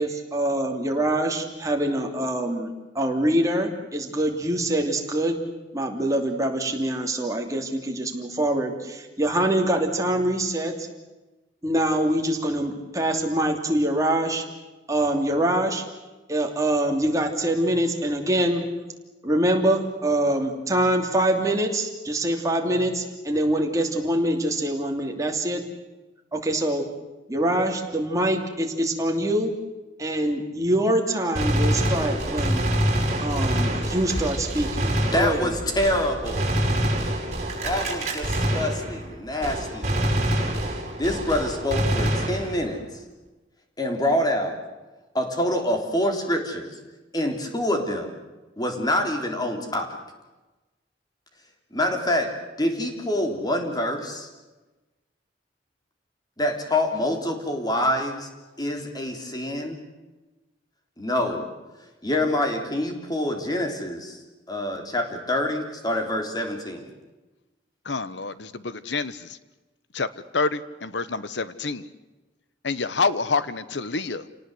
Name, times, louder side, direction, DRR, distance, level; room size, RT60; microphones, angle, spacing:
voice 1, 0.0-5.4 5.7-10.8 11.6-14.4 14.9-15.8 16.3-18.6 19.2-25.6 26.3-26.9 27.3-29.5 30.0-32.7 33.2-35.5, right 1 dB, 20° right, 2 dB, 2.9 m, -24 dB
Gunshot gunfire, 31.3-39.1 39.4-42.8, right 1 dB, 40° right, 5.2 m, -25 dB
voice 2, 35.1-36.5 37.6-40.2 41.0-42.8 43.8-44.6 45.1-46.7 47.1-48.1 48.6-49.9 51.7-52.3 52.6-54.3 56.4-58.3 58.6-59.8 61.0-61.4 62.0-64.2 64.5-66.9, left 1 dB, 20° left, 4 dB, 3.5 m, -26 dB
voice 3, 67.8-69.4 69.9-70.1 70.3-71.9 72.6-74.3, left 4 dB, 75° left, 15 dB, 1.2 m, -27 dB
28.0 x 18.5 x 7.9 m, 1.1 s
head